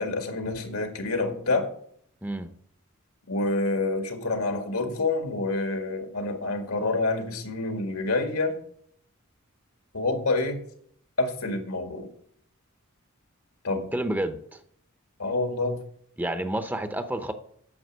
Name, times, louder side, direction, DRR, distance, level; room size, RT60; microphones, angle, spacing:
voice 1, 0.0-1.7 3.3-8.6 9.9-10.6 11.2-12.1 13.6-13.9 15.2-15.8, left 2 dB, 80° left, 5 dB, 1.9 m, -27 dB
voice 2, 13.9-14.6 16.2-17.3, right 1 dB, 10° right, 9 dB, 0.6 m, -29 dB
9.6 x 7.0 x 6.5 m, 0.64 s
head